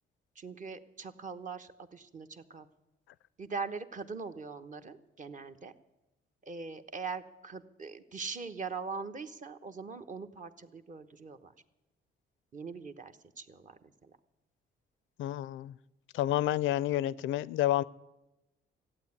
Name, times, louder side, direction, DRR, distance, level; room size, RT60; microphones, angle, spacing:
voice 1, 0.4-2.7 3.4-5.7 6.5-11.5 12.5-13.8, right 4 dB, 40° right, 8 dB, 1.1 m, -41 dB
voice 2, 15.2-15.7 16.1-17.8, left 13 dB, 80° left, 20 dB, 0.5 m, -29 dB
14.0 x 8.8 x 9.7 m, 0.98 s
cardioid pair, 90°, 20 cm